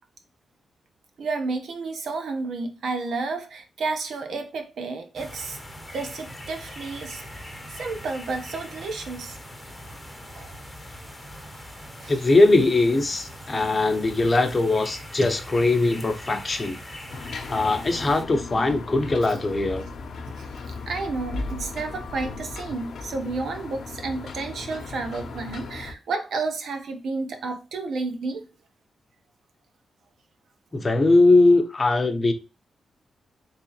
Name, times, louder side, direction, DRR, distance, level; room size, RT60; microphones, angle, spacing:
voice 1, 1.2-5.6 5.9-7.2 7.7-9.4 10.3-10.6 12.0-12.2 20.4-28.5, right 3 dB, 80° right, 0.8 m, -31 dB
sound 1, 5.1-18.2, left 1 dB, 10° left, 1.0 m, -41 dB
voice 2, 12.1-16.8 17.5-19.8 30.7-32.3, left 2 dB, 35° left, 0.8 m, -20 dB
sound 2, 17.1-25.9, left 3 dB, 70° left, 0.7 m, -36 dB
3.7 x 3.3 x 3.0 m
cardioid pair, 80°, 0 cm